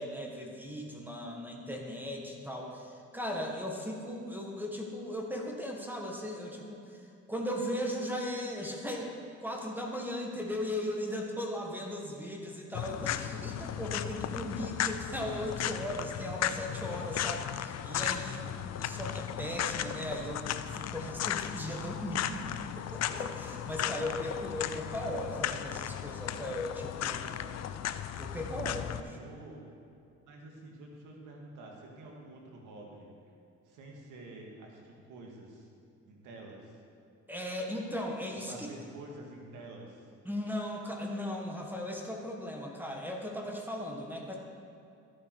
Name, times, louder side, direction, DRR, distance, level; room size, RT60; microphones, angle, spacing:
voice 1, 0.0-9.1 9.4-27.3 27.6-27.7 28.2-29.3 37.3-38.7 40.2-44.4, left 1 dB, 5° right, 0 dB, 1.6 m, -37 dB
sound 1, 12.7-29.0, left 10 dB, 60° left, 0.5 m, -36 dB
voice 2, 28.9-29.6 30.2-33.1 33.7-35.7 36.1-36.8 38.5-40.1, right 2 dB, 90° right, -1 dB, 2.0 m, -49 dB
13.0 x 8.5 x 4.7 m, 2.5 s
cardioid pair, 90°, 30 cm